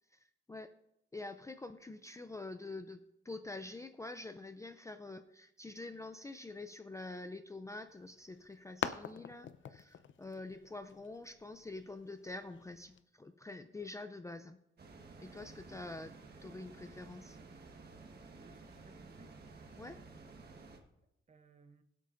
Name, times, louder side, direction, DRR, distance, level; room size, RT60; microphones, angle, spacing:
voice 1, 0.1-0.7 1.1-14.6 15.2-16.2 16.4-17.4 19.8-20.0, left 2 dB, 15° left, 0.4 m, -46 dB
sound 1, 7.9-13.0, left 8 dB, 70° left, 0.6 m, -45 dB
sound 2, 14.8-20.8, right 3 dB, 50° right, 1.4 m, -53 dB
voice 2, 18.3-19.4 21.0-21.8, right 4 dB, 35° right, 0.8 m, -63 dB
22.5 x 8.3 x 2.5 m
wide cardioid pair, 160°, 20 cm